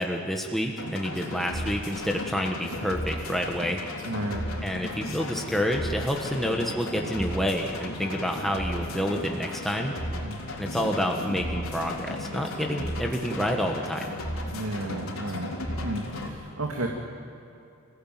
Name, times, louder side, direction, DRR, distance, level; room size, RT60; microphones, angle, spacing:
voice 1, 0.0-3.8 4.6-9.9 10.6-14.1, equal, ahead, 1 dB, 1.3 m, -28 dB
sound 1, 0.8-16.3, left 1 dB, 75° left, 3.8 m, -35 dB
voice 2, 4.0-4.4 10.2-10.5 14.5-15.5 15.8-16.9, right 2 dB, 75° right, 0 dB, 2.2 m, -32 dB
27.0 x 16.5 x 9.2 m, 2.8 s
head